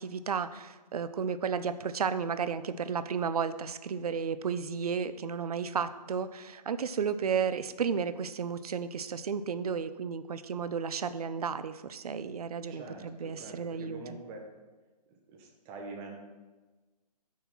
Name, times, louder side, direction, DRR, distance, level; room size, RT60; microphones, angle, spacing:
voice 1, 0.0-14.0, right 6 dB, 65° right, 13 dB, 0.5 m, -33 dB
voice 2, 12.7-14.4 15.1-16.2, right 3 dB, 15° right, 0 dB, 0.6 m, -45 dB
5.6 x 4.4 x 6.1 m, 1.2 s
figure-of-eight pair, 145°, 21 cm